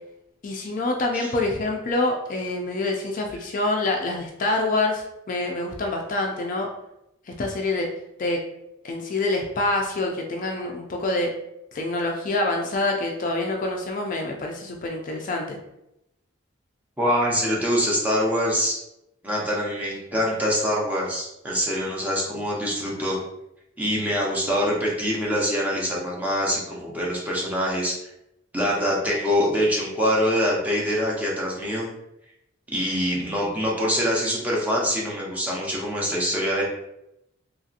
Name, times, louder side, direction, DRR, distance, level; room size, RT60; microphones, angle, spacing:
voice 1, 0.4-6.7 7.3-7.9 8.2-8.4 8.8-11.3 11.7-15.6 22.3-22.5, left 2 dB, 40° left, 1 dB, 0.3 m, -26 dB
voice 2, 17.0-18.8 19.2-23.2 23.8-27.9 28.5-31.9 32.7-36.6, equal, 10° right, -4 dB, 0.6 m, -24 dB
2.9 x 2.7 x 2.4 m, 0.84 s
head